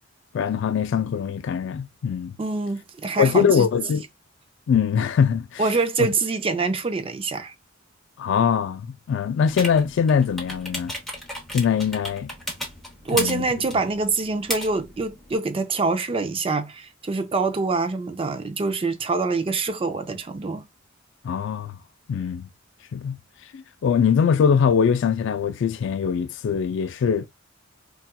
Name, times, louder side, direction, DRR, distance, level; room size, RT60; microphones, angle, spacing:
voice 1, 0.3-2.3 3.2-4.0 4.7-5.6 8.2-10.9 11.5-12.3 13.1-13.5 21.2-21.7 22.1-22.5 22.9-23.2 23.5-27.3, left 7 dB, 60° left, 0.3 m, -22 dB
voice 2, 2.4-3.7 5.6-7.5 13.1-20.7, right 3 dB, 25° right, 0.4 m, -25 dB
sound 1, 9.5-15.4, left 1 dB, ahead, 0.8 m, -35 dB
4.2 x 2.3 x 2.2 m
head